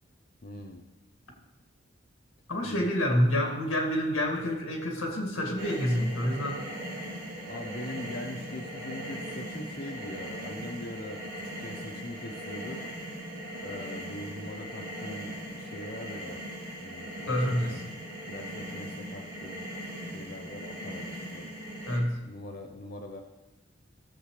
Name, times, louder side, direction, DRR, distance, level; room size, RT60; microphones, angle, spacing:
voice 1, 0.4-0.8 2.6-2.9 7.5-12.9 13.6-16.4 16.8-17.8 18.2-19.7 20.0-21.5 22.3-23.2, left 1 dB, 45° left, 3 dB, 0.6 m, -42 dB
voice 2, 2.5-6.6 17.3-17.8 21.9-22.2, equal, 85° left, 1 dB, 2.1 m, -28 dB
sound 1, 5.6-22.0, equal, 60° right, 3.8 m, -39 dB
15.5 x 7.5 x 3.3 m, 1.1 s
head